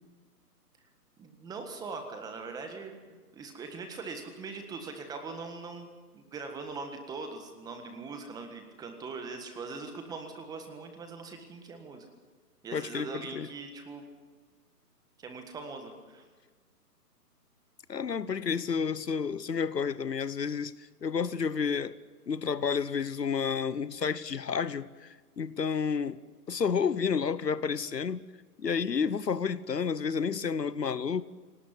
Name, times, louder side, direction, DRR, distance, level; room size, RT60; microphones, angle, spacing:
voice 1, 1.2-12.0 12.6-14.0 15.2-16.2, right 4 dB, 10° right, 1.6 m, -41 dB
voice 2, 12.7-13.5 17.9-21.9 22.3-26.2 26.5-28.2 28.6-31.2, left 6 dB, 85° left, 1.2 m, -30 dB
26.5 x 18.5 x 8.2 m
figure-of-eight pair, 145°, 48 cm